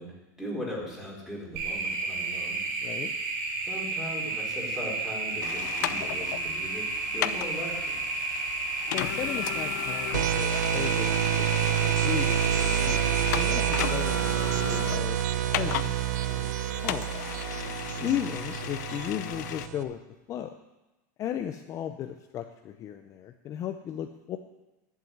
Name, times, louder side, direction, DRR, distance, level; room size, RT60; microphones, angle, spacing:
voice 1, 0.0-2.6 3.7-6.9 7.1-8.0 18.0-18.1, equal, 5° right, -3 dB, 4.7 m, -38 dB
sound 1, 1.6-13.8, right 3 dB, 65° right, 4.6 m, -32 dB
voice 2, 2.8-3.2 8.9-13.0 13.3-15.8 16.2-16.6 16.8-17.1 18.0-20.0 20.3-20.5 21.2-24.4, left 10 dB, 35° left, 6 dB, 0.7 m, -35 dB
sound 2, 5.4-19.7, left 13 dB, 75° left, 0.6 m, -36 dB
sound 3, 10.1-19.8, right 11 dB, 85° right, 0.8 m, -28 dB
11.0 x 7.7 x 9.6 m, 1.0 s
supercardioid pair, 135°, 9 cm